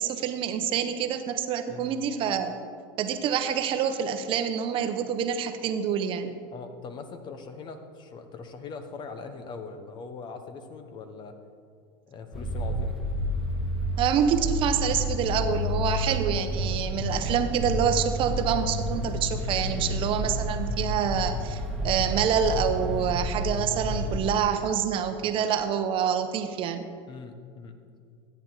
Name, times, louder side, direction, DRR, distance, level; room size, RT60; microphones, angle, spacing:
voice 1, 0.0-2.5 3.0-6.4 14.0-26.9, right 8 dB, 45° right, 8 dB, 0.9 m, -27 dB
voice 2, 6.5-11.4 12.1-13.0 27.1-27.8, left 4 dB, 40° left, 8 dB, 1.1 m, -41 dB
sound 1, 12.3-24.2, equal, ahead, 2.0 m, -30 dB
13.5 x 9.4 x 4.0 m, 2.2 s
supercardioid pair, 115°, 12 cm